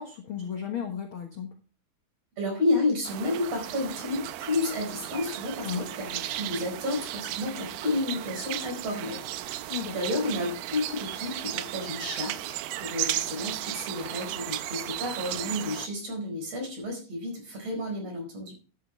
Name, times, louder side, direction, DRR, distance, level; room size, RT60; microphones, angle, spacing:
voice 1, 0.0-1.5 5.6-5.9 9.7-9.9, left 8 dB, 70° left, 4 dB, 1.2 m, -34 dB
voice 2, 2.4-18.5, left 2 dB, 40° right, 2 dB, 5.5 m, -31 dB
sound 1, 3.0-15.9, right 14 dB, 80° right, 2.3 m, -35 dB
12.0 x 9.9 x 3.3 m, 0.35 s
omnidirectional pair, 4.5 m